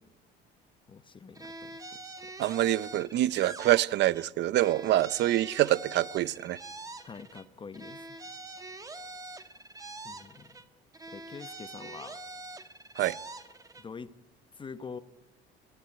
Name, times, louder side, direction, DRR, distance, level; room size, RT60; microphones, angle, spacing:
voice 1, 0.9-2.3 7.0-8.2 10.0-10.5 11.1-12.2 13.8-14.1 14.5-15.0, left 5 dB, 25° left, 0.9 m, -45 dB
sound 1, 1.3-4.3 4.5-7.5 7.7-10.7 10.9-13.9, right 2 dB, 15° right, 1.4 m, -45 dB
voice 2, 2.4-6.6 13.0-13.2, right 14 dB, 60° right, 0.7 m, -26 dB
20.5 x 16.0 x 9.7 m
cardioid pair, 125°, 21 cm